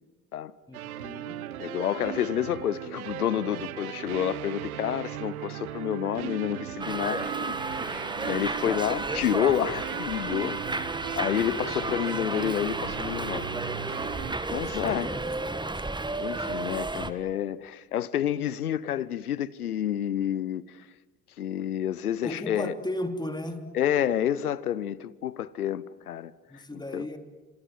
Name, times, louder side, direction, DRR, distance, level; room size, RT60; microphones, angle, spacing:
voice 1, 0.7-1.4 11.3-11.7 14.7-15.8 22.2-23.6 26.5-27.2, left 1 dB, 10° left, 3.2 m, -36 dB
sound 1, 0.7-14.4, right 12 dB, 75° right, 1.0 m, -38 dB
voice 2, 1.6-10.6 11.2-13.5 14.2-15.1 16.2-20.6 21.4-22.7 23.7-27.1, left 10 dB, 80° left, 0.9 m, -29 dB
Subway metro underground, 6.8-17.1, right 2 dB, 10° right, 1.7 m, -32 dB
29.5 x 26.0 x 7.8 m
figure-of-eight pair, 55°, 44 cm